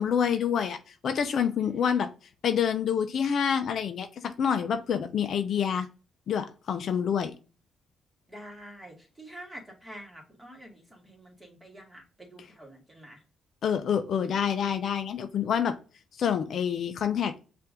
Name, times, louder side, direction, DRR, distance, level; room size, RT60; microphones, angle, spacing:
voice 1, 0.0-2.1 2.4-5.9 6.3-7.3 13.6-15.8 16.2-17.3, left 8 dB, 60° left, 8 dB, 0.5 m, -27 dB
voice 2, 8.3-13.2, equal, 10° right, 0 dB, 1.9 m, -47 dB
5.6 x 2.6 x 3.6 m, 0.34 s
cardioid pair, 90°, 0 cm